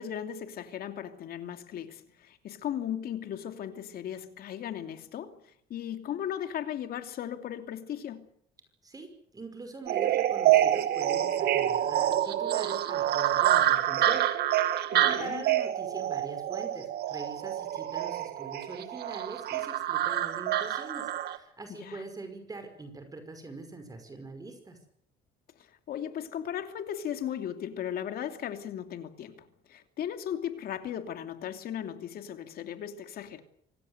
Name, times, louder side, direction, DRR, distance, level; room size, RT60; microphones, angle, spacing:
voice 1, 0.0-5.4 5.7-8.3 14.9-15.5 21.7-22.0 25.6-33.4, left 10 dB, 65° left, 2.8 m, -37 dB
voice 2, 9.3-14.3 14.5-24.8, right 3 dB, 20° right, 5.5 m, -43 dB
sound 1, 9.9-21.4, right 12 dB, 70° right, 2.3 m, -27 dB
26.0 x 18.0 x 8.2 m
cardioid pair, 110°, 17 cm